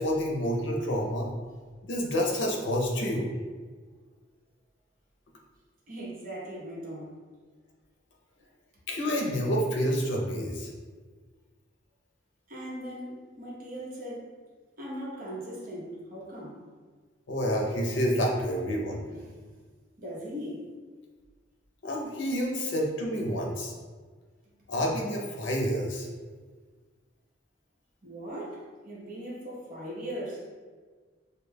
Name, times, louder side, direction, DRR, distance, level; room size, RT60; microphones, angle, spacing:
voice 1, 0.0-1.3 1.8-3.3 8.9-10.7 17.3-19.1 21.8-23.7 24.7-26.1, equal, 75° left, -1 dB, 0.6 m, -28 dB
voice 2, 5.9-7.1 12.5-14.3 14.8-16.6 19.1-19.4 20.0-20.7 28.0-30.4, equal, 45° right, -5 dB, 0.9 m, -39 dB
5.1 x 2.2 x 2.2 m, 1.4 s
head